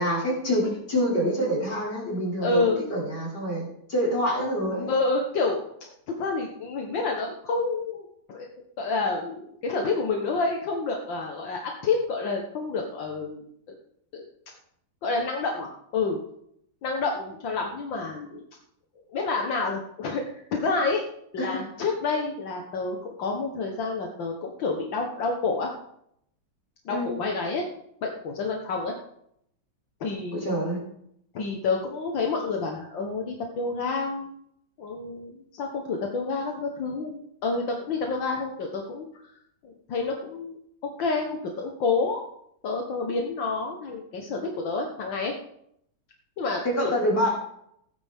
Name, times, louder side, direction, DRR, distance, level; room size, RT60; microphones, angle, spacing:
voice 1, 0.0-4.9 21.4-21.5 26.9-27.2 30.3-30.8 46.6-47.5, equal, 55° left, -5 dB, 5.7 m, -26 dB
voice 2, 2.4-2.8 4.9-5.6 6.1-8.5 8.8-13.8 14.1-14.2 15.0-16.2 16.8-18.4 19.1-21.0 21.3-25.7 26.9-27.6 28.0-28.9 30.0-30.8 31.3-34.3 34.8-39.1 39.6-40.6 40.8-42.2 42.6-45.3 46.4-46.6, left 3 dB, 70° left, 1 dB, 2.1 m, -29 dB
17.0 x 10.0 x 3.7 m, 0.71 s
omnidirectional pair, 2.1 m